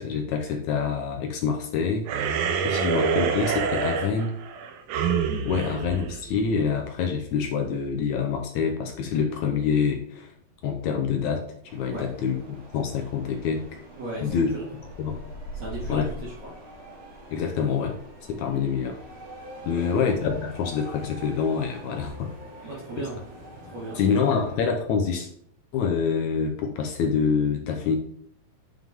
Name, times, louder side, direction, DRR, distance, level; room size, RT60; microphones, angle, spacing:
voice 1, 0.0-2.4 2.6-4.4 5.5-10.3 10.6-12.4 12.7-13.6 14.2-14.5 15.0-15.2 15.9-16.1 17.3-18.0 18.3-19.0 19.7-22.3 23.0-23.1 24.0-25.3 25.7-28.0, left 6 dB, 70° left, 4 dB, 1.9 m, -26 dB
sound 1, 2.1-6.8, right 6 dB, 75° right, 2.2 m, -27 dB
sound 2, 11.6-24.6, right 1 dB, 35° right, 1.8 m, -43 dB
voice 2, 14.0-14.6 15.5-16.5 19.8-20.0 22.6-23.2 23.7-24.0, right 2 dB, 55° right, -6 dB, 2.8 m, -36 dB
9.0 x 5.7 x 3.6 m, 0.65 s
omnidirectional pair, 4.1 m